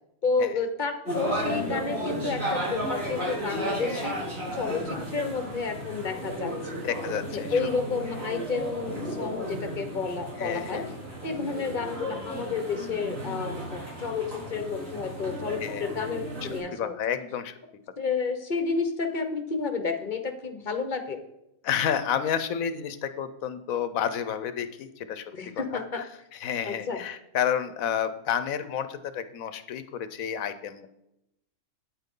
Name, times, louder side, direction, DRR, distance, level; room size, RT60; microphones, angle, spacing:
voice 1, 0.2-4.2 4.5-6.5 7.3-10.8 11.2-16.9 18.0-21.2 25.3-26.0 26.7-27.0, left 4 dB, 40° left, 6 dB, 1.1 m, -30 dB
sound 1, 1.1-16.6, equal, 70° right, 4.6 m, -34 dB
voice 2, 6.8-7.6 10.4-10.9 15.6-15.8 16.7-17.5 21.6-26.1 26.3-30.9, left 8 dB, 85° left, 12 dB, 1.2 m, -30 dB
9.1 x 9.0 x 3.8 m, 0.85 s
omnidirectional pair, 1.4 m